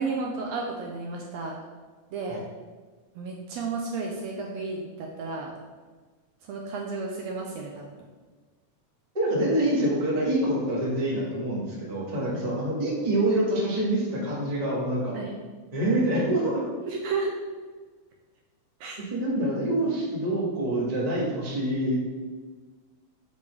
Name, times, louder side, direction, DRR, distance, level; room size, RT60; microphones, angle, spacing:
voice 1, 0.0-1.6 2.1-2.4 3.2-5.6 6.4-8.0 12.3-12.5 15.1-15.4 16.9-17.3 18.8-19.0, right 4 dB, 80° right, 0 dB, 1.7 m, -32 dB
voice 2, 9.1-15.1 15.7-16.6 19.1-22.0, right 1 dB, 25° right, -6 dB, 0.9 m, -26 dB
6.3 x 5.3 x 3.3 m, 1.4 s
omnidirectional pair, 3.4 m